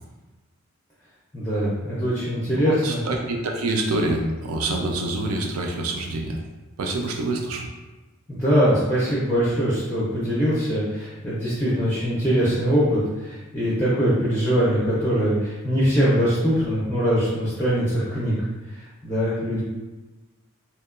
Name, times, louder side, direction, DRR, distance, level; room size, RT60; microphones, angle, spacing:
voice 1, 1.3-3.0 8.3-18.3 18.7-19.6, equal, 10° left, -9 dB, 0.4 m, -22 dB
voice 2, 2.5-6.4 6.8-7.7, right 2 dB, 85° right, 2 dB, 0.4 m, -26 dB
2.8 x 2.1 x 2.3 m, 1.1 s
head